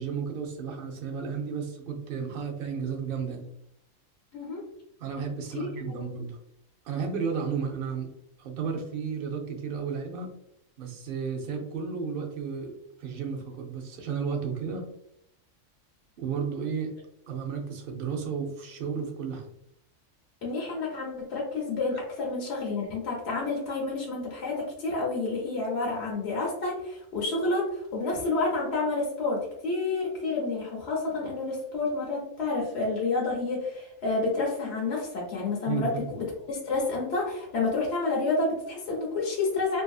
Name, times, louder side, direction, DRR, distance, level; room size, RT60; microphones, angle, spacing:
voice 1, 0.0-3.5 5.0-6.4 6.8-8.1 8.4-10.3 10.8-14.9 16.2-16.9 17.3-19.5 35.7-36.0, right 6 dB, 60° right, 3 dB, 0.6 m, -33 dB
voice 2, 4.3-4.6 5.5-5.7 6.0-6.1 20.4-39.8, left 3 dB, 60° left, -3 dB, 0.9 m, -29 dB
2.6 x 2.5 x 2.3 m, 0.75 s
omnidirectional pair, 1.4 m